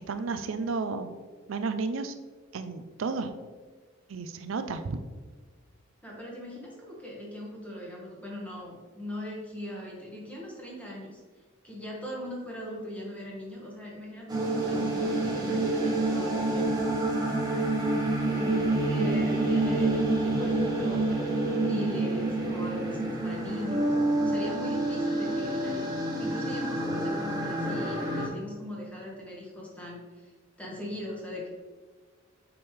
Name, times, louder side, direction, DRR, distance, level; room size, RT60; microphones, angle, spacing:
voice 1, 0.1-1.1 1.5-2.1 2.5-3.3 4.1-5.0, right 4 dB, 80° right, 9 dB, 0.5 m, -32 dB
voice 2, 6.0-11.2 11.6-16.7 18.4-23.9 24.2-30.3 30.6-31.5, left 1 dB, 5° left, -3 dB, 1.6 m, -40 dB
sound 1, 14.3-28.3, right 2 dB, 20° right, 1.2 m, -28 dB
7.0 x 5.3 x 3.3 m, 1.4 s
head